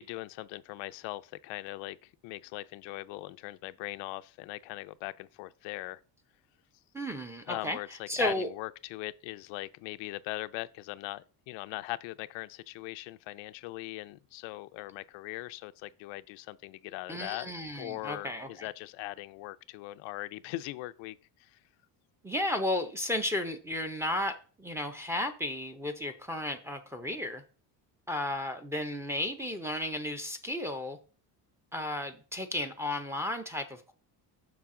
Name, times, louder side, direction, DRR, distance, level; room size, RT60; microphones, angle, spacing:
voice 1, 0.0-6.0 7.5-17.5 17.8-21.6, left 18 dB, 85° left, 0.5 m, -40 dB
voice 2, 6.9-8.5 17.1-18.7 22.2-27.4 28.1-31.0 31.7-33.9, left 1 dB, 5° right, 0.6 m, -34 dB
6.5 x 5.8 x 3.7 m
cardioid pair, 140°, 44 cm